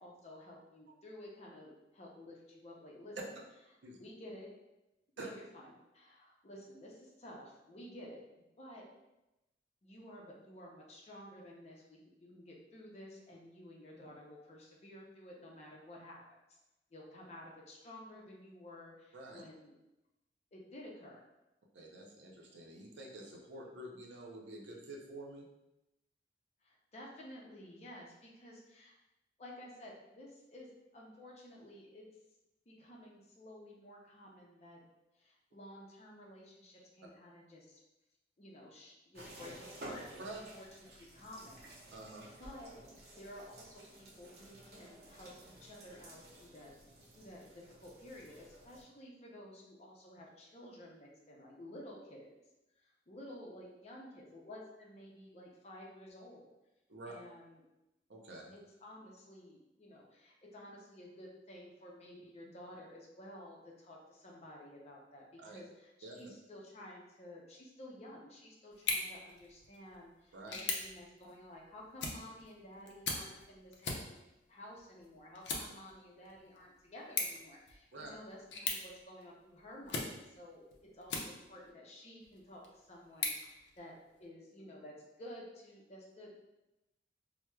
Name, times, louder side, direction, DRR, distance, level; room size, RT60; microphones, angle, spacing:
voice 1, 0.0-3.4 4.0-4.5 5.2-8.8 9.8-16.6 16.9-19.7 20.5-21.2 26.6-28.9 29.4-32.1 32.7-34.8 35.1-37.8 38.4-42.0 42.4-42.8 43.1-46.7 47.1-52.4 52.8-56.5 57.0-57.6 58.5-74.2 74.5-80.7 80.9-86.3, left 1 dB, 35° left, -2 dB, 0.5 m, -53 dB
voice 2, 21.7-25.5 40.2-40.4 41.9-42.3 56.9-57.1 58.1-58.5 65.4-65.6 66.0-66.2 70.3-70.5 77.9-78.1, right 2 dB, 85° right, -1 dB, 0.6 m, -48 dB
sound 1, 39.1-48.8, right 1 dB, 60° right, 0.8 m, -53 dB
sound 2, 68.7-81.7 82.2-84.3, left 3 dB, 85° left, 0.5 m, -43 dB
4.4 x 2.0 x 2.2 m, 0.96 s
head